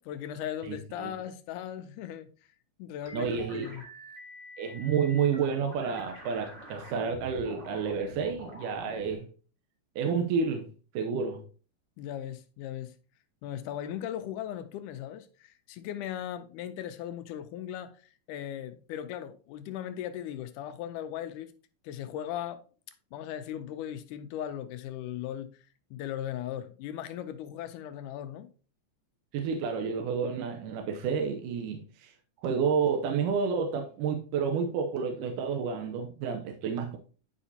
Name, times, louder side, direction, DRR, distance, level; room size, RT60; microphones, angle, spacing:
voice 1, 0.0-2.3 2.8-3.8 12.0-13.0 13.4-18.0 18.3-21.5 21.8-22.6 23.1-28.5, left 10 dB, 80° left, 2.0 m, -38 dB
voice 2, 0.6-1.1 3.1-3.8 4.6-9.3 10.0-10.7 10.9-11.4 29.3-32.1 32.4-37.0, right 6 dB, 90° right, 2.3 m, -30 dB
sound 1, 3.0-9.1, equal, 25° right, 1.1 m, -46 dB
9.9 x 5.0 x 2.7 m
omnidirectional pair, 3.7 m